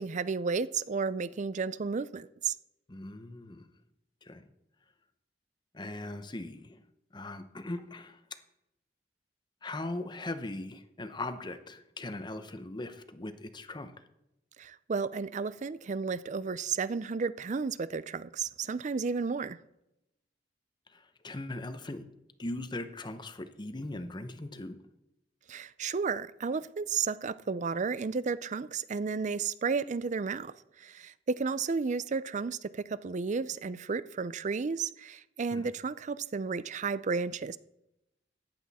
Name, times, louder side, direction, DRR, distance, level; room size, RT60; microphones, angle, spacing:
voice 1, 0.0-2.5 14.6-19.6 25.5-37.6, right 5 dB, 45° right, 0.5 m, -33 dB
voice 2, 2.9-3.7 4.2-4.5 5.7-6.8 7.1-8.4 9.6-14.0 20.9-22.1 22.4-24.8 35.5-35.7, left 2 dB, 25° left, 0.9 m, -39 dB
14.5 x 10.5 x 4.2 m
head